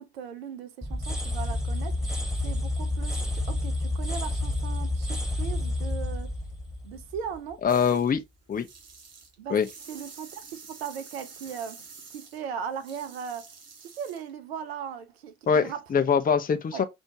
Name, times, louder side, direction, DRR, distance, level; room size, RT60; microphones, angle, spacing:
voice 1, 0.0-2.1 2.4-6.3 6.8-7.6 9.4-9.6 9.9-13.5 13.8-15.9 16.7-16.8, right 7 dB, 85° right, 0.5 m, -38 dB
sound 1, 0.8-7.7, left 1 dB, ahead, 1.6 m, -30 dB
voice 2, 7.6-8.2 8.5-8.7 9.5-9.7 15.5-16.8, left 6 dB, 30° left, 0.7 m, -23 dB
sound 2, 7.7-8.2 8.5-14.3, right 5 dB, 55° right, 1.4 m, -48 dB
5.6 x 2.7 x 2.8 m
hypercardioid pair, 45°, 30 cm